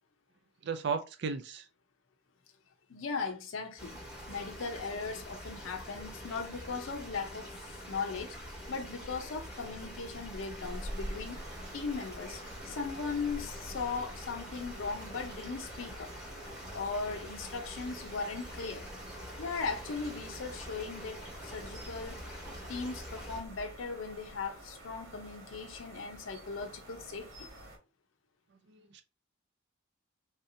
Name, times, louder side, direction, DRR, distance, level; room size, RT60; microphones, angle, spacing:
voice 1, 0.6-1.6 28.7-29.0, right 5 dB, 55° right, 0.4 m, -35 dB
voice 2, 2.9-4.0 4.3-7.6 7.9-8.4 8.7-11.4 11.7-16.1 16.7-18.9 19.4-22.2 22.7-27.5, left 4 dB, 75° left, 0.5 m, -38 dB
sound 1, 3.8-23.4, equal, 5° right, 1.0 m, -45 dB
sound 2, 10.6-27.8, right 1 dB, 70° right, 1.4 m, -51 dB
3.3 x 2.8 x 2.6 m
head